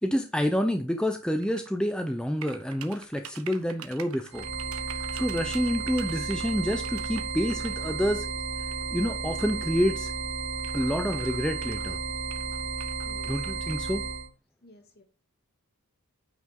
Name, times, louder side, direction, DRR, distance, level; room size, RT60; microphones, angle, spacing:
voice 1, 0.0-4.5 4.9-8.3 8.9-10.1 10.7-12.0 13.3-14.0, equal, 5° left, 0.7 m, -28 dB
sound 1, 1.4-1.7 2.4-7.9 8.7-8.8 9.8-9.9 10.1-10.2 10.6-11.9 12.3-13.9, right 8 dB, 70° right, 1.2 m, -46 dB
sound 2, 4.3-14.3, right 4 dB, 50° right, 2.1 m, -33 dB
voice 2, 13.0-13.4 14.6-15.0, left 1 dB, 45° left, 2.5 m, -53 dB
9.3 x 5.8 x 3.7 m
head